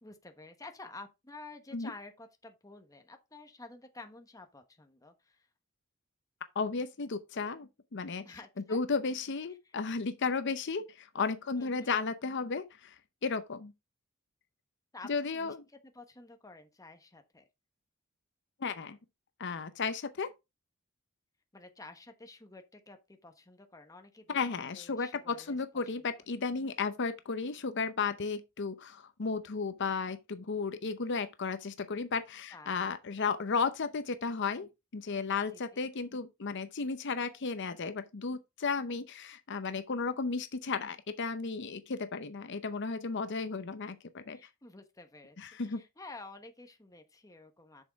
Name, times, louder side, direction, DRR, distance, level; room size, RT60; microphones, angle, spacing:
voice 1, 0.0-5.5 8.2-8.8 9.6-9.8 11.5-11.9 14.9-15.5 15.9-17.4 21.5-24.4 24.7-26.1 32.5-32.8 35.5-35.8 44.3-47.8, left 3 dB, 15° left, 1.1 m, -51 dB
voice 2, 6.5-8.2 8.7-13.7 15.1-15.6 18.6-19.0 19.4-20.3 24.3-44.4 45.4-45.8, left 4 dB, 60° left, 0.7 m, -34 dB
7.8 x 6.4 x 3.5 m
head